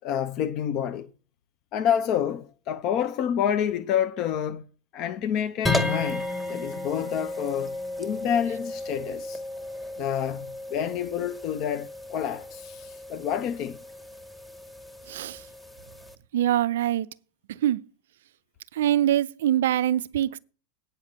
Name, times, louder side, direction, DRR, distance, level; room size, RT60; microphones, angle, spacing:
voice 1, 0.0-1.1 1.7-4.6 4.9-9.4 10.0-13.8, left 9 dB, 40° left, 0.6 m, -28 dB
sound 1, 5.7-16.2, left 2 dB, 10° left, 1.5 m, -34 dB
voice 2, 15.1-15.4 16.3-17.1 17.5-17.8 18.7-20.4, right 12 dB, 55° right, 0.4 m, -24 dB
9.5 x 5.5 x 7.9 m
figure-of-eight pair, 90°, 0 cm